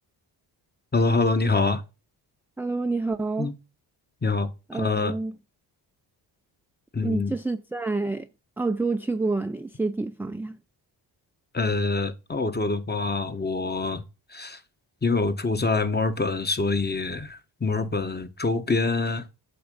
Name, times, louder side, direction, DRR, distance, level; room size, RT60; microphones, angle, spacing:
voice 1, 0.9-1.8 3.4-3.5 4.2-5.1 6.9-7.3 11.5-14.0 14.3-14.6 15.0-19.3, left 3 dB, 20° left, 1.1 m, -25 dB
voice 2, 2.6-3.5 4.7-5.4 7.0-8.3 8.6-10.6, right 3 dB, 5° right, 0.4 m, -28 dB
7.9 x 3.4 x 5.3 m
cardioid pair, 60°, 46 cm